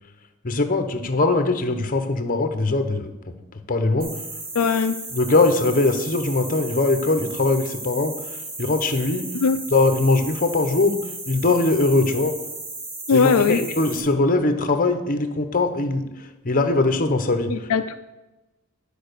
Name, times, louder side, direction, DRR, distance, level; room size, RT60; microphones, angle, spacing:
voice 1, 0.4-3.3 3.7-4.1 5.1-9.3 9.7-11.0 11.3-12.3 13.1-17.7, left 2 dB, 40° left, 8 dB, 1.0 m, -21 dB
sound 1, 4.0-14.0, right 2 dB, 45° right, 2.7 m, -35 dB
voice 2, 4.5-4.9 9.3-9.6 13.1-13.6 17.5-18.0, left 5 dB, 75° left, 8 dB, 0.4 m, -19 dB
11.0 x 5.0 x 6.8 m, 1.0 s
head